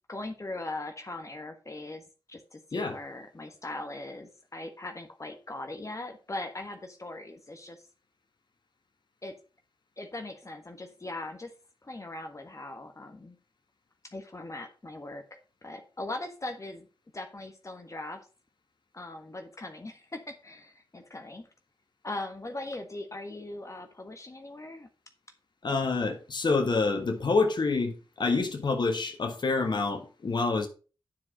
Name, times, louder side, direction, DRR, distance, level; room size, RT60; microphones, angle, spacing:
voice 1, 0.1-7.8 9.2-9.3 10.0-11.5 11.8-13.4 14.0-16.9 17.1-18.3 18.9-21.5 22.0-24.9, left 2 dB, 35° left, 5 dB, 1.4 m, -40 dB
voice 2, 25.6-30.7, left 3 dB, 55° left, 4 dB, 1.6 m, -27 dB
9.4 x 5.0 x 5.3 m, 0.34 s
supercardioid pair, 40°, 9 cm